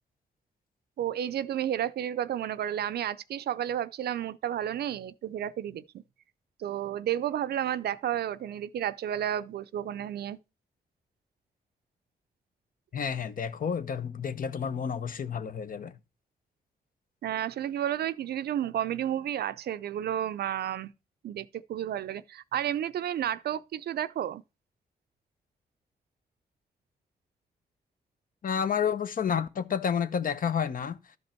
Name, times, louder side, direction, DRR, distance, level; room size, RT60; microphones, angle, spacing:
voice 1, 1.0-6.0 6.6-10.4 17.2-20.9 21.2-24.4, right 10 dB, 70° right, 0.5 m, -31 dB
voice 2, 12.9-16.0 28.4-31.0, left 7 dB, 55° left, 0.8 m, -30 dB
12.0 x 5.3 x 4.4 m
cardioid pair, 65°, 17 cm